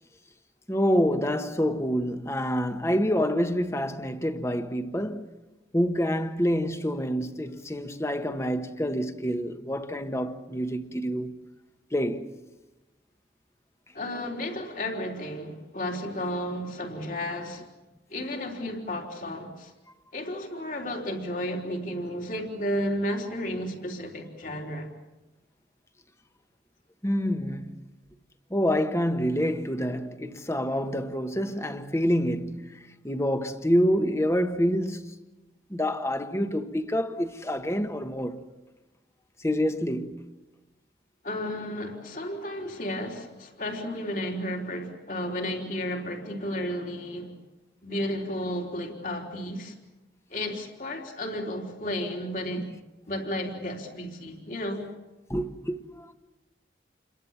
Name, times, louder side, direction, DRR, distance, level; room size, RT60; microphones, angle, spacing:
voice 1, 0.7-5.3 5.7-11.3 11.9-12.3 27.0-27.7 28.5-35.1 35.7-38.4 39.4-40.2 55.3-56.1, equal, 15° left, 1.4 m, -27 dB
voice 2, 13.9-17.7 18.1-19.7 20.1-24.9 41.2-47.3 47.8-49.7 50.3-52.7 53.1-54.9, left 1 dB, 50° left, 3.7 m, -33 dB
29.0 x 22.5 x 7.4 m
head